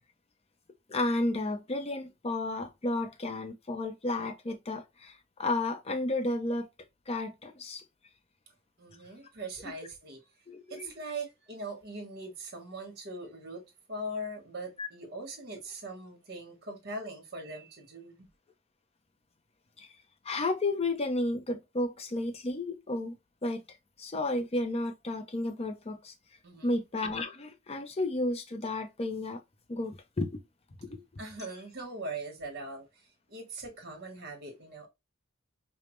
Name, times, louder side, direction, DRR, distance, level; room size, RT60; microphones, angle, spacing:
voice 1, 0.9-5.1 5.4-6.7 7.1-7.8 10.5-10.9 14.8-14.9 19.8-19.9 20.2-23.1 23.4-23.6 24.0-26.1 26.6-29.4 29.7-30.4 30.8-31.0, left 2 dB, 30° left, 0.6 m, -32 dB
voice 2, 8.8-10.2 10.7-13.6 13.9-18.3 26.4-26.8 31.2-34.9, right 2 dB, 50° right, 1.4 m, -41 dB
5.0 x 2.1 x 3.1 m
head